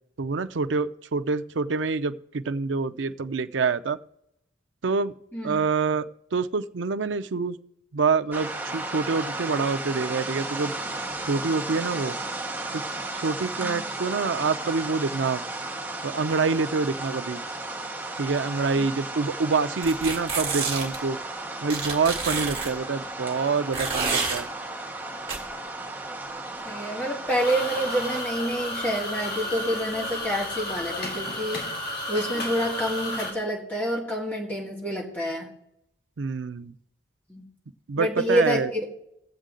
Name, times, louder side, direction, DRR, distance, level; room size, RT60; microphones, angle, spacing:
voice 1, 0.2-4.0 4.8-5.1 5.4-7.6 7.9-10.7 11.2-12.2 12.7-12.8 13.1-15.4 16.0-17.4 18.2-21.2 21.6-24.5 36.2-36.7 37.9-38.7, right 4 dB, 80° right, 11 dB, 0.5 m, -26 dB
sound 1, 8.3-28.2, right 2 dB, 10° right, 1.0 m, -34 dB
sound 2, 19.8-21.0 21.7-22.7 23.7-24.4 25.3-25.4, right 4 dB, 30° right, 2.1 m, -28 dB
voice 2, 26.7-31.6 32.1-35.5 37.3-37.4 38.0-38.6, equal, 10° left, -3 dB, 2.0 m, -28 dB
sound 3, 27.3-33.3, left 1 dB, 50° left, 2.6 m, -32 dB
18.0 x 7.4 x 3.8 m, 0.76 s
head